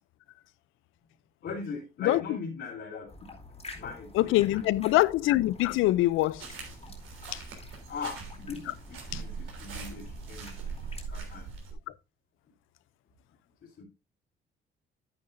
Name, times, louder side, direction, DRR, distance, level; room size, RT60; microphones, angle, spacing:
voice 1, 1.4-3.1 3.7-5.0 7.9-10.6 11.1-11.5 13.6-13.8, left 5 dB, 65° left, 3.2 m, -40 dB
voice 2, 2.0-2.4 4.1-6.4 7.3-7.4 9.1-9.2, left 17 dB, 90° left, 0.5 m, -24 dB
sound 1, 3.1-11.1, left 2 dB, 30° left, 2.5 m, -49 dB
sound 2, 6.4-11.7, right 5 dB, 85° right, 3.3 m, -41 dB
9.6 x 9.5 x 2.6 m
cardioid pair, 90°, 20 cm